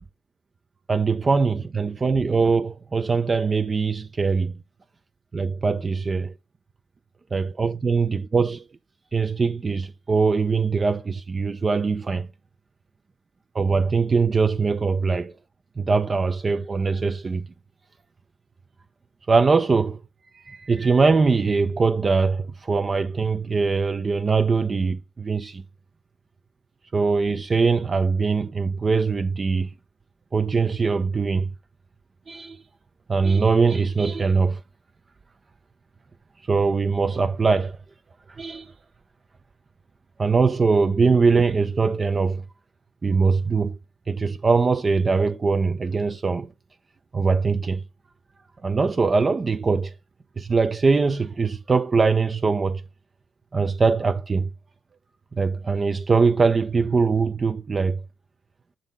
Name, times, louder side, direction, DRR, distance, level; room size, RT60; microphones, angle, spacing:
voice 1, 0.9-4.6 5.3-6.3 7.3-8.6 9.1-12.3 13.5-15.4 15.8-17.5 19.3-20.0 20.3-25.6 26.9-29.7 30.3-31.5 32.3-32.6 33.1-34.6 36.5-37.8 38.3-38.7 40.2-42.4 43.0-43.8 44.1-46.5 47.1-47.8 48.6-49.9 50.4-52.8 53.5-54.5 55.3-58.0, right 4 dB, 30° right, 0.4 m, -22 dB
6.1 x 3.8 x 5.2 m
cardioid pair, 90°, 0 cm